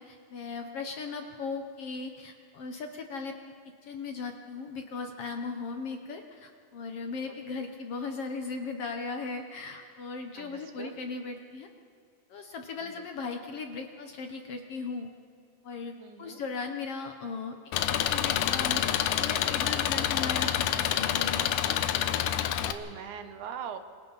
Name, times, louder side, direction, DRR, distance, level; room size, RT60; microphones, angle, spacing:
voice 1, 0.0-3.3 3.8-11.7 12.3-15.1 15.6-15.9 16.2-17.6 17.9-18.9 19.1-21.5, left 4 dB, 65° left, 4 dB, 1.7 m, -37 dB
voice 2, 10.4-10.9 12.8-12.9 16.0-16.4 22.6-23.8, right 8 dB, 75° right, 8 dB, 2.5 m, -41 dB
Engine, 17.7-22.7, left 11 dB, 80° left, 2.3 m, -27 dB
27.0 x 25.0 x 4.1 m, 2.1 s
omnidirectional pair, 3.6 m